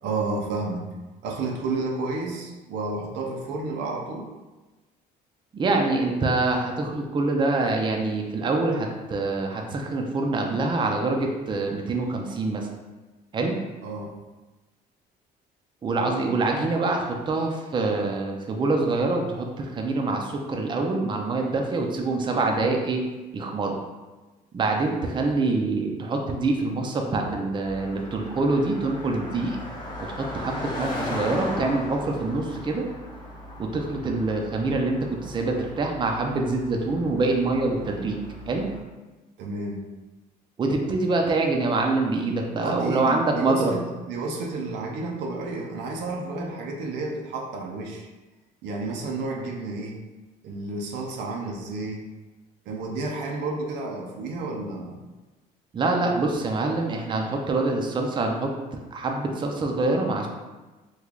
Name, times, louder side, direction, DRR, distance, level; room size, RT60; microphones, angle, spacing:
voice 1, 0.0-0.8 1.2-4.3 13.8-14.2 39.4-39.8 42.6-48.1 48.6-50.0 50.4-52.1 52.7-55.0, right 3 dB, 85° right, 0 dB, 0.6 m, -31 dB
voice 2, 5.5-12.7 13.3-13.6 15.8-23.1 23.3-23.8 24.5-29.6 30.1-32.8 33.6-38.2 38.5-38.7 40.6-43.7 55.7-58.5 58.9-60.3, right 3 dB, 30° right, 2 dB, 0.5 m, -25 dB
Car passing by, 27.6-38.8, left 1 dB, 25° left, 0.8 m, -37 dB
3.1 x 2.3 x 3.7 m, 1.2 s
cardioid pair, 110°, 17 cm